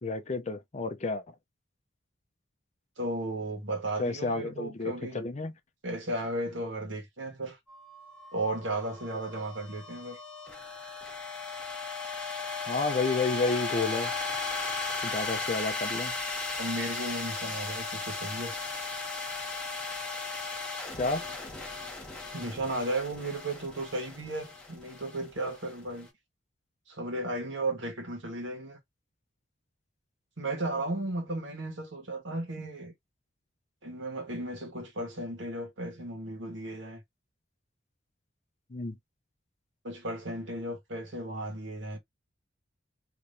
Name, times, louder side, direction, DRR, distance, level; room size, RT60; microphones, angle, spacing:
voice 1, 0.0-1.2 4.0-5.5 12.7-14.1 15.0-16.1 21.0-21.2 38.7-38.9, left 3 dB, 35° left, 0.5 m, -30 dB
voice 2, 3.0-5.2 5.8-7.6 8.3-10.2 16.6-18.5 22.3-26.1 26.9-28.8 30.4-32.9 33.8-37.0 39.8-42.0, right 1 dB, 70° right, 1.5 m, -35 dB
sound 1, 7.7-26.0, left 4 dB, 5° left, 1.5 m, -36 dB
3.3 x 3.0 x 2.6 m
head